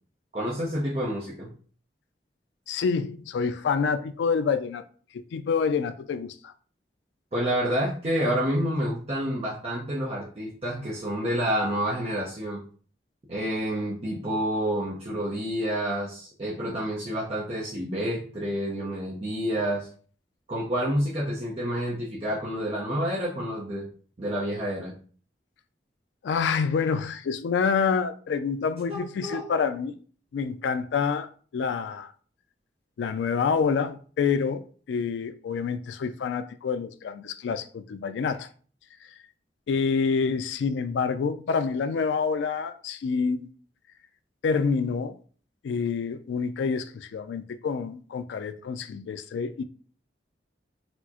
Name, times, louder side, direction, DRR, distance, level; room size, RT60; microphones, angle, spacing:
voice 1, 0.3-1.5 7.3-12.6 13.3-19.9 20.5-23.9 24.2-24.9 28.9-29.4, equal, 35° right, 0.6 m, -29 dB
voice 2, 2.7-4.8 5.1-6.4 26.2-29.9 30.3-31.3 31.5-32.1 33.0-38.5 39.7-43.5 44.4-45.2 45.6-49.6, left 5 dB, 80° left, 0.3 m, -27 dB
4.3 x 2.0 x 2.8 m
head